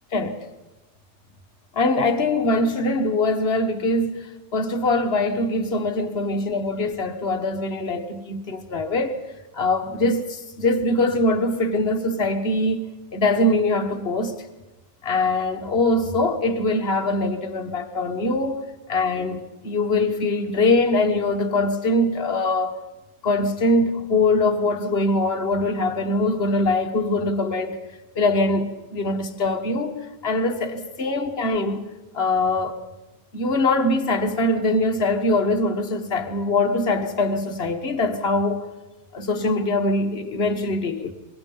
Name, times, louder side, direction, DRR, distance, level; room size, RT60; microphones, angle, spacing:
voice 1, 1.7-9.2 9.5-12.8 13.1-14.4 15.0-22.8 23.2-27.8 28.1-31.8 32.1-32.8 33.3-38.7 39.1-41.1, left 2 dB, 35° left, 1.5 m, -22 dB
24.5 x 22.0 x 5.4 m
omnidirectional pair, 2.1 m